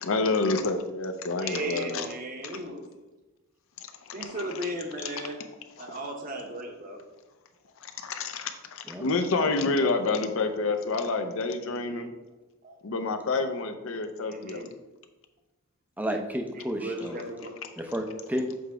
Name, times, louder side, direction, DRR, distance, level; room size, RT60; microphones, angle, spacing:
voice 1, 0.0-2.1 2.4-2.5 4.2-4.7 5.0-5.2 5.8-6.0 7.8-12.1 12.8-14.6, left 3 dB, 65° left, 7 dB, 0.6 m, -28 dB
voice 2, 1.4-2.9 4.1-5.4 5.8-7.0 11.6-12.1 12.6-12.8 14.2-14.7 16.6-17.6, right 1 dB, 40° right, 2 dB, 0.9 m, -36 dB
voice 3, 16.0-17.2 17.8-18.5, equal, 5° right, 4 dB, 0.5 m, -31 dB
7.0 x 3.4 x 4.8 m, 1.1 s
head